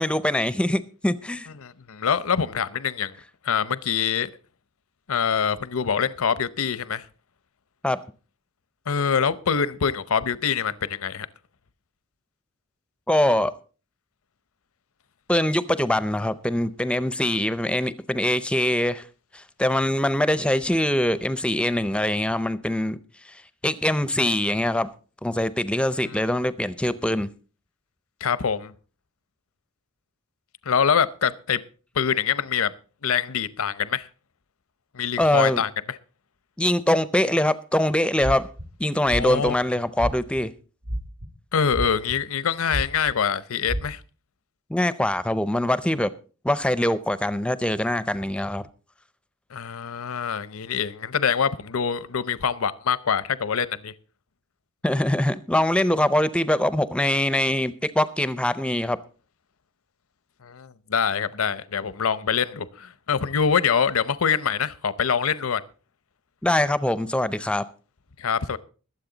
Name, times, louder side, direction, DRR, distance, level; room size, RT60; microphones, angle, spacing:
voice 1, 0.0-1.5 7.8-8.0 13.1-13.5 15.3-19.1 19.3-23.0 23.3-24.9 25.2-27.3 35.2-35.6 36.6-38.5 38.8-40.5 44.7-46.1 46.4-48.6 54.8-59.0 66.4-67.6, left 1 dB, 5° left, 0.5 m, -23 dB
voice 2, 1.6-3.1 3.4-4.3 5.1-7.1 8.9-11.3 26.1-26.2 28.2-28.7 30.7-31.6 31.9-32.7 33.0-34.1 34.9-36.0 39.1-39.5 41.5-44.0 49.5-53.9 60.4-65.6 68.2-68.6, left 7 dB, 75° left, 0.7 m, -25 dB
sound 1, 38.2-38.7 39.1-39.5 40.0-40.4 40.8-41.3 41.7-42.4 42.7-43.1 43.7-43.8, equal, 80° right, 2.1 m, -29 dB
21.5 x 7.6 x 3.9 m
head